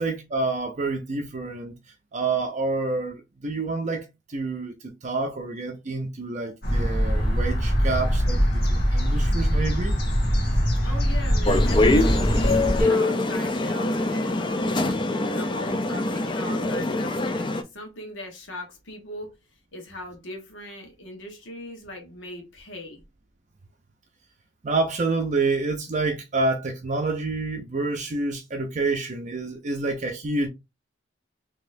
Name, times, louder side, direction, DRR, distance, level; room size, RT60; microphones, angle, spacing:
voice 1, 0.0-1.7 2.1-4.7 5.0-8.4 8.7-9.9 24.6-30.5, right 3 dB, 40° right, 0.5 m, -28 dB
sound 1, 6.6-12.8, equal, 55° left, 1.4 m, -22 dB
voice 2, 10.8-14.9 15.3-19.3 19.7-23.0, left 1 dB, 85° left, 1.2 m, -39 dB
sound 2, 11.5-17.6, left 2 dB, 25° left, 0.4 m, -24 dB
4.1 x 2.9 x 2.6 m
head